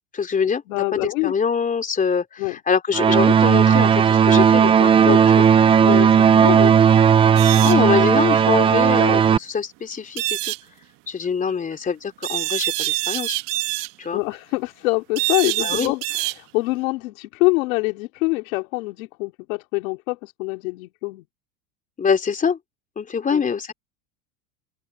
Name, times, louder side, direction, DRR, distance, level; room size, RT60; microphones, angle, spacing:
voice 1, 0.1-0.6 0.9-5.4 5.9-6.0 7.6-10.5 11.1-13.4 14.0-14.2 15.6-15.9 22.0-22.6 23.0-23.7, left 6 dB, 20° left, 3.4 m, -24 dB
voice 2, 0.7-1.3 2.4-2.6 5.0-5.2 5.8-6.7 14.1-16.0 16.4-21.2 23.3-23.4, left 25 dB, 75° left, 2.6 m, -25 dB
sound 1, 2.9-9.4, right 7 dB, 15° right, 0.4 m, -15 dB
sound 2, 7.4-7.8 10.2-10.6 12.2-13.9 15.2-16.4, right 19 dB, 55° right, 1.4 m, -25 dB
open air
supercardioid pair, 135°, 41 cm